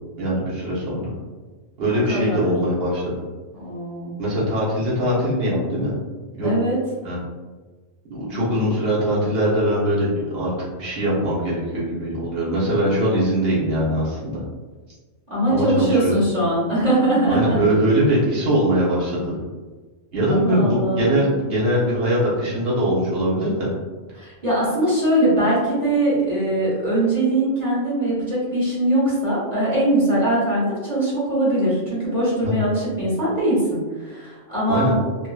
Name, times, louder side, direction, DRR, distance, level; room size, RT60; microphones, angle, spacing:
voice 1, 0.2-1.1 1.8-3.2 4.2-5.9 6.3-6.5 7.0-7.2 8.1-10.5 10.8-14.4 15.5-16.1 17.3-19.4 20.1-23.7 32.4-32.5 34.7-34.9, equal, 55° right, -7 dB, 1.2 m, -21 dB
voice 2, 2.1-2.6 3.5-4.1 6.4-6.8 8.3-8.4 15.3-17.6 20.3-21.2 24.1-34.9, right 1 dB, 35° right, -10 dB, 1.0 m, -21 dB
2.9 x 2.7 x 2.2 m, 1.3 s
omnidirectional pair, 1.3 m